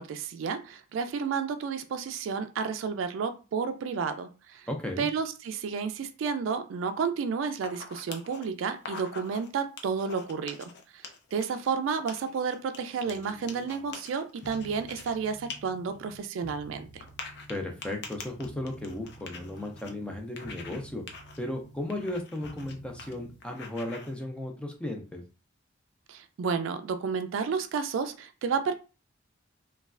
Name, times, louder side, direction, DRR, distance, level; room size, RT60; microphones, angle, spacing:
voice 1, 0.0-4.7 5.0-11.0 11.3-17.0 26.1-28.7, right 5 dB, 75° right, 9 dB, 0.3 m, -31 dB
voice 2, 4.7-5.1 17.5-21.0 21.4-25.2, left 1 dB, 5° left, 2 dB, 0.5 m, -35 dB
sound 1, 7.5-8.4 8.8-9.5 9.8-11.7 12.1-15.1 15.5-15.6 15.9-16.0 17.0-19.9 20.4-20.8 21.1-21.4 21.9-22.7 23.0-23.1 23.4-24.1, left 4 dB, 60° left, 0.5 m, -44 dB
sound 2, 13.0-13.9 14.4-16.2 16.4-20.2 20.4-22.2 22.4-23.3, equal, 90° left, 0.8 m, -50 dB
3.1 x 2.3 x 2.4 m, 0.33 s
head